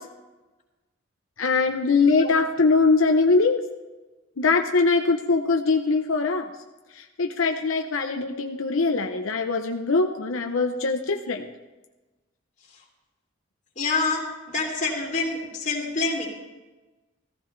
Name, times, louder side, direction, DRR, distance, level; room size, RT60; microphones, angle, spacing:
voice 1, 1.4-3.6 4.4-6.5 7.0-11.5, left 4 dB, 90° left, 4 dB, 0.8 m, -22 dB
voice 2, 13.8-14.2 14.5-16.3, left 3 dB, 40° left, -1 dB, 3.0 m, -26 dB
15.5 x 15.0 x 3.3 m, 1.2 s
head